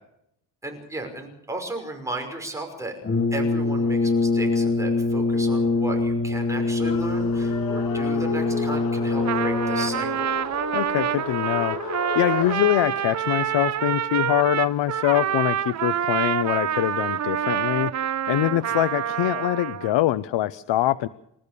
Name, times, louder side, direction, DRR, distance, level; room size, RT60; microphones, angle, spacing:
voice 1, 0.6-3.0 3.3-10.3 18.6-18.8, right 2 dB, 5° right, 2 dB, 5.7 m, -35 dB
Brass instrument, 3.0-10.2, left 3 dB, 25° left, 1.4 m, -24 dB
sound 1, 6.8-12.5, left 6 dB, 55° left, 3.5 m, -33 dB
Trumpet, 9.1-19.9, right 9 dB, 40° right, 0.7 m, -27 dB
voice 2, 10.7-21.1, left 14 dB, 80° left, 14 dB, 0.9 m, -24 dB
29.0 x 14.0 x 6.8 m, 0.78 s
cardioid pair, 165°, 43 cm